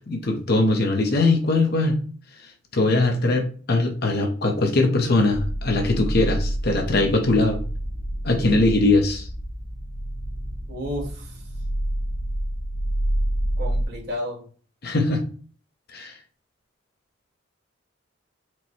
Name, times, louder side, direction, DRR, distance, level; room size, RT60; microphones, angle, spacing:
voice 1, 0.1-2.0 2.7-7.6 8.2-9.3 14.8-15.2 15.9-16.1, left 2 dB, 50° left, 3 dB, 0.8 m, -21 dB
sound 1, 5.3-13.8, right 1 dB, 80° left, 1.5 m, -28 dB
voice 2, 10.7-11.4 13.6-14.4, equal, 55° right, -1 dB, 1.5 m, -32 dB
4.5 x 2.2 x 4.1 m, 0.41 s
head